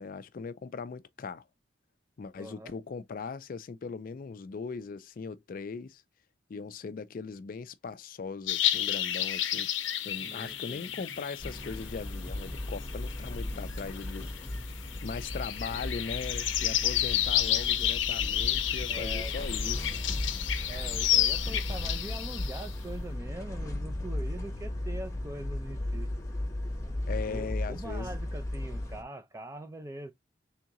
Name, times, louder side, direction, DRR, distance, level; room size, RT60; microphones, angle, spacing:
voice 1, 0.0-1.4 2.2-6.0 6.5-14.3 15.0-20.0 27.1-28.1, left 5 dB, 50° left, 0.4 m, -39 dB
voice 2, 2.4-2.7 10.2-10.8 18.9-19.3 20.7-26.1 27.3-30.1, right 1 dB, 15° right, 0.5 m, -42 dB
sound 1, 8.5-22.7, left 12 dB, 90° left, 0.6 m, -31 dB
sound 2, 10.2-15.7, right 1 dB, 60° right, 1.8 m, -55 dB
sound 3, 11.4-29.0, left 1 dB, 15° left, 1.0 m, -36 dB
3.6 x 3.6 x 2.9 m
head